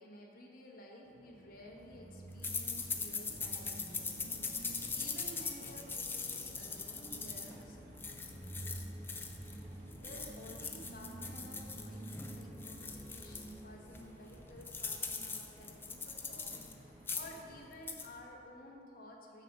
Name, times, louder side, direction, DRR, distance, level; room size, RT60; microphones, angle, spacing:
voice 1, 0.0-7.8 10.0-19.4, left 1 dB, 55° left, -1 dB, 1.2 m, -53 dB
sound 1, 1.0-7.8, right 1 dB, 85° right, 1.0 m, -62 dB
sound 2, 1.5-17.7, right 1 dB, 40° right, 1.4 m, -50 dB
sound 3, 2.4-9.6 9.9-13.5 13.9-14.0 14.3-16.7 17.0-17.4 17.7-18.1, left 4 dB, 10° left, 0.5 m, -41 dB
7.2 x 5.3 x 7.0 m, 2.6 s
head